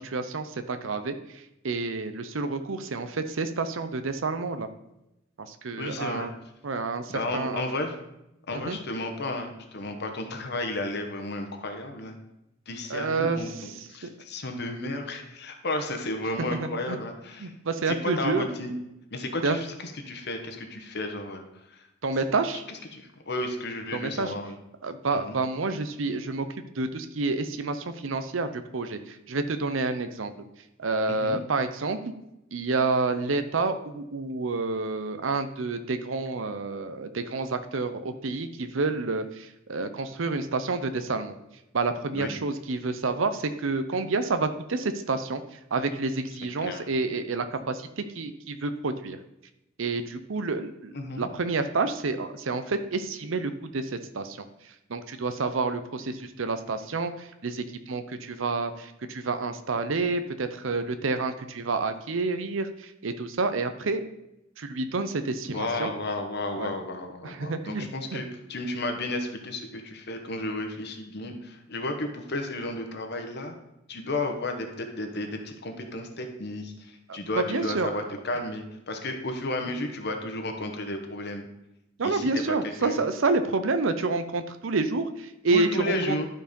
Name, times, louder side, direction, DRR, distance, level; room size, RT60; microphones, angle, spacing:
voice 1, 0.0-4.7 5.4-6.3 6.6-7.6 8.7-8.8 12.9-13.7 14.0-14.1 16.6-17.0 17.4-18.5 19.4-19.6 22.0-22.6 23.9-24.3 24.8-26.5 26.8-30.3 30.8-32.0 32.5-41.4 41.7-45.4 45.7-49.2 49.8-54.4 54.9-64.0 64.6-65.9 66.6-66.7 67.2-68.2 77.1-77.9 82.0-86.2, right 3 dB, 75° right, 9 dB, 0.7 m, -29 dB
voice 2, 5.8-6.3 7.1-8.0 8.5-12.2 12.7-13.5 13.9-17.5 17.9-18.7 19.1-21.4 21.7-21.9 22.7-24.6 25.1-25.4 31.1-31.4 42.1-42.3 46.6-46.8 50.9-51.3 65.5-73.5 73.9-81.4 82.0-82.9 85.5-86.3, left 2 dB, 55° left, 4 dB, 1.2 m, -33 dB
12.0 x 4.6 x 5.2 m, 0.87 s
head